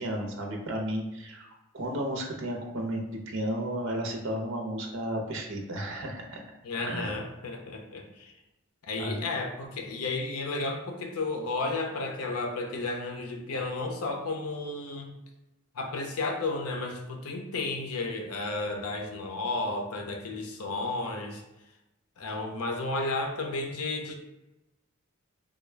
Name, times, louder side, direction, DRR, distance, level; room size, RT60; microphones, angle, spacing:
voice 1, 0.0-1.5 1.7-6.4 6.8-7.1 9.0-9.2, right 1 dB, 60° right, 1 dB, 0.7 m, -33 dB
voice 2, 6.6-8.3 8.8-15.1 15.7-21.4 22.2-24.1, left 2 dB, 85° left, 3 dB, 0.6 m, -33 dB
3.5 x 2.3 x 3.2 m, 0.98 s
head